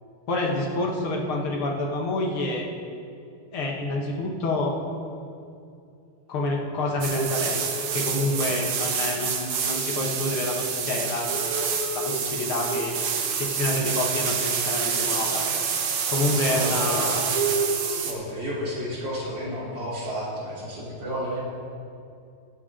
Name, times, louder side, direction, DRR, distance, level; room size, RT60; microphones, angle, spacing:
voice 1, 0.3-2.7 3.5-4.8 6.3-15.5 16.1-17.2, left 2 dB, 80° left, 0 dB, 2.4 m, -28 dB
sound 1, 7.0-18.1, right 6 dB, 90° right, 2.0 m, -27 dB
voice 2, 16.3-17.2 17.9-21.4, equal, 55° right, -9 dB, 4.5 m, -32 dB
22.5 x 8.3 x 3.8 m, 2.5 s
omnidirectional pair, 2.3 m